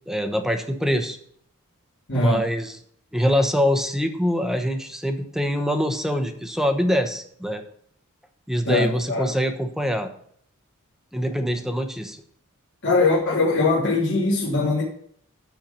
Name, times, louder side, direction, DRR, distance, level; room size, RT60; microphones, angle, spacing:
voice 1, 0.1-1.2 2.1-2.7 3.1-7.6 8.5-10.1 11.1-12.2, equal, ahead, 1.1 m, -24 dB
voice 2, 2.1-2.5 8.6-9.3 12.8-14.8, left 3 dB, 55° left, 3.2 m, -21 dB
13.0 x 4.5 x 7.1 m
head